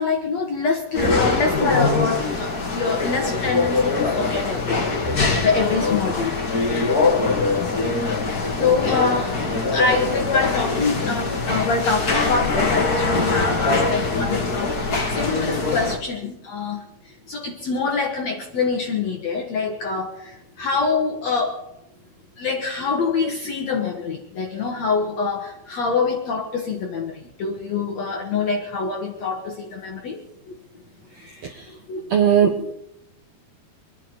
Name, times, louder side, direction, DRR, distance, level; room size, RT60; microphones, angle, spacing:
voice 1, 0.0-6.5 8.3-9.4 9.7-16.8 17.3-21.6 22.4-30.2 30.5-30.6 31.9-32.1 32.6-32.7, left 4 dB, 60° left, 3 dB, 1.9 m, -25 dB
sound 1, 0.9-16.0, left 3 dB, 35° left, 1.6 m, -22 dB
voice 2, 32.1-32.7, right 8 dB, 70° right, 3 dB, 1.6 m, -17 dB
25.5 x 10.5 x 5.3 m, 0.84 s
omnidirectional pair, 4.7 m